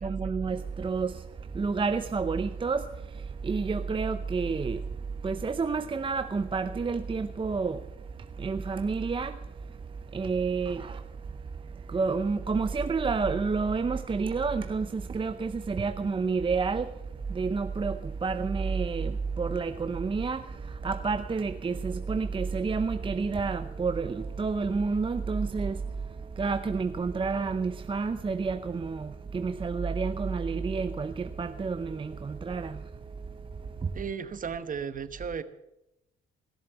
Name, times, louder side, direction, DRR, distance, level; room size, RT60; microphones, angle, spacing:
voice 1, 0.0-1.2 1.5-2.9 3.4-4.8 5.2-7.8 8.4-9.4 10.1-11.0 11.9-16.9 17.3-25.8 26.4-32.8 33.8-33.9, right 4 dB, 25° right, 0.7 m, -29 dB
voice 2, 33.9-35.4, right 6 dB, 40° right, 1.1 m, -35 dB
16.5 x 7.3 x 8.1 m
cardioid pair, 90°, 20 cm